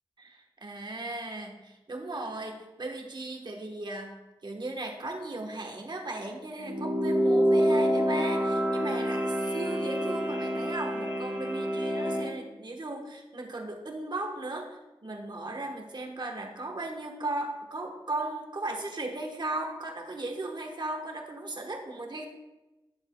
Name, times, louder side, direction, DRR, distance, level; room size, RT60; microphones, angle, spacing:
voice 1, 0.2-4.2 4.4-22.3, right 2 dB, 50° right, 2 dB, 1.2 m, -36 dB
sound 1, 6.6-12.3, equal, 25° right, 2.4 m, -27 dB
10.5 x 7.0 x 2.3 m, 1.0 s
wide cardioid pair, 90°, 10 cm